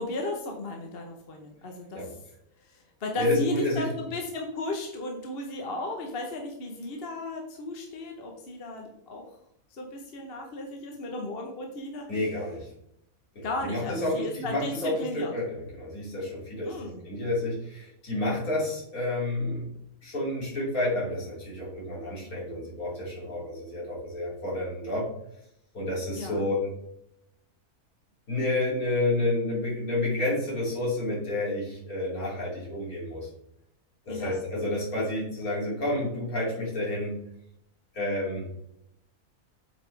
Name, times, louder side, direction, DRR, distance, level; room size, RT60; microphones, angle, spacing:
voice 1, 0.0-2.0 2.6-9.2 9.7-12.1 13.4-15.3 16.7-17.0 26.1-26.4 34.1-34.4, left 2 dB, 45° left, 2 dB, 1.2 m, -35 dB
voice 2, 3.2-3.9 12.1-12.7 13.4-19.7 20.0-25.1 25.7-26.7 28.3-33.3 34.1-37.1 37.9-38.4, left 1 dB, 70° left, -6 dB, 3.5 m, -30 dB
8.3 x 5.2 x 3.4 m, 0.76 s
omnidirectional pair, 1.6 m